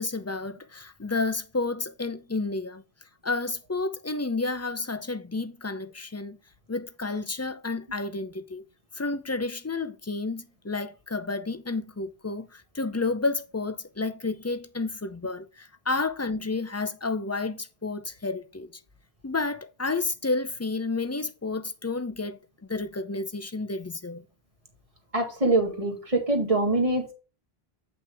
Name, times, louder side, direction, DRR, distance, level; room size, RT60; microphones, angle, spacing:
voice 1, 0.0-2.8 3.2-6.4 6.7-8.6 9.0-18.7 19.2-22.4 22.7-24.2, left 3 dB, 20° left, 0.5 m, -31 dB
voice 2, 25.1-27.1, right 2 dB, 35° right, 2.0 m, -24 dB
8.5 x 5.8 x 3.5 m
omnidirectional pair, 1.0 m